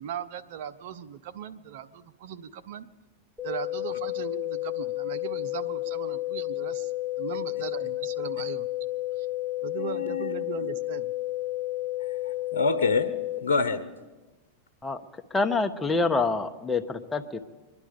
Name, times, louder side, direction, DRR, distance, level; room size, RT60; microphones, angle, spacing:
voice 1, 0.0-2.9 3.4-6.9 7.2-8.7 9.2-9.3 9.6-11.1, right 8 dB, 65° right, 14 dB, 0.8 m, -38 dB
sound 1, 3.4-13.4, left 17 dB, 5° right, 3.9 m, -31 dB
voice 2, 9.8-10.3 10.6-10.7 12.0-13.1 13.4-13.8, left 4 dB, 80° left, 8 dB, 1.0 m, -27 dB
voice 3, 15.3-17.4, left 3 dB, 15° left, 5 dB, 1.2 m, -26 dB
24.5 x 11.0 x 5.2 m, 1.2 s
hypercardioid pair, 100°, 0 cm